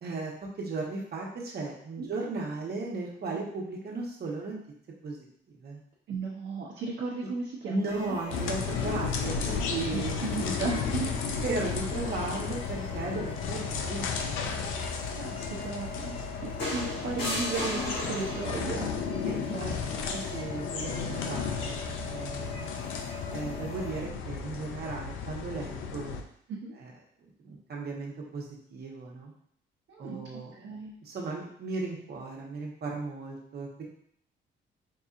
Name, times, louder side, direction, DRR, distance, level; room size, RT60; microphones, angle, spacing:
voice 1, 0.0-0.3 0.6-4.5 5.0-5.3 5.6-5.8 7.7-10.2 10.4-10.5 11.4-14.6 19.3-22.7 23.3-26.1 26.8-26.9 27.4-28.4 28.7-29.3 30.0-30.7 31.0-33.8, right 3 dB, 55° right, -2 dB, 1.1 m, -36 dB
voice 2, 6.1-8.2 8.9-9.3 9.9-11.3 15.1-19.8 26.5-26.7 29.9-31.0, right 4 dB, 70° right, -4 dB, 0.8 m, -36 dB
sound 1, 7.9-24.0, left 3 dB, 30° left, 0.6 m, -43 dB
sound 2, 8.3-26.2, left 6 dB, 90° left, 0.5 m, -34 dB
sound 3, 16.6-18.7 20.1-20.4, left 1 dB, 65° left, 1.4 m, -34 dB
4.7 x 2.7 x 2.5 m, 0.67 s
cardioid pair, 90°, 20 cm